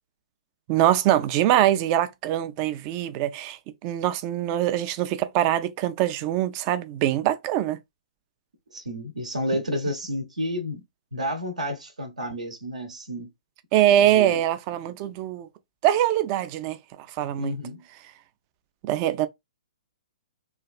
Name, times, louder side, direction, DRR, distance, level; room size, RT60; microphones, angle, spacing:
voice 1, 0.7-7.8 13.7-15.5 15.8-17.6 18.8-19.3, right 12 dB, 30° right, 0.3 m, -23 dB
voice 2, 8.7-10.8 11.1-13.3 14.1-14.4 17.4-17.8, equal, 70° right, 0.9 m, -30 dB
3.2 x 2.3 x 2.4 m
figure-of-eight pair, 120°, 4 cm